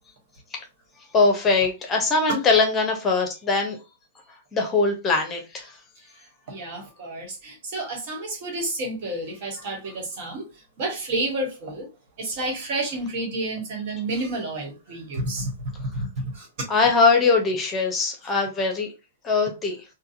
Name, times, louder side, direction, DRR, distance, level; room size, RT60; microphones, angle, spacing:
voice 1, 1.1-3.8 4.5-5.8 16.7-18.9 19.2-19.8, left 4 dB, 20° left, 0.9 m, -21 dB
voice 2, 6.5-10.4 10.8-11.9 12.2-15.5 15.9-16.1 16.3-16.5, right 2 dB, 50° right, 1.5 m, -30 dB
3.9 x 2.3 x 2.6 m
figure-of-eight pair, 105°, 0 cm